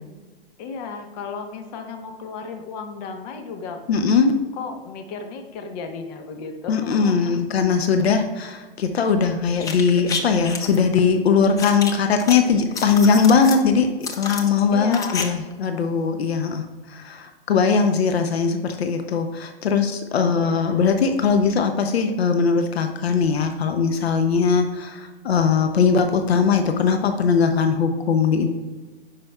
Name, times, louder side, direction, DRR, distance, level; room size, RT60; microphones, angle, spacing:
voice 1, 0.6-3.8 4.5-7.4 14.7-15.4 20.3-20.9, left 5 dB, 45° left, 5 dB, 1.1 m, -34 dB
voice 2, 3.9-4.4 6.7-13.9 14.2-28.5, left 5 dB, 85° left, 6 dB, 0.7 m, -20 dB
sound 1, 9.6-10.8 11.6-12.3 12.7-13.6 14.0-15.2 15.5-15.6, left 4 dB, 10° left, 0.4 m, -30 dB
9.9 x 5.1 x 2.3 m, 1.3 s
hypercardioid pair, 125°, 30 cm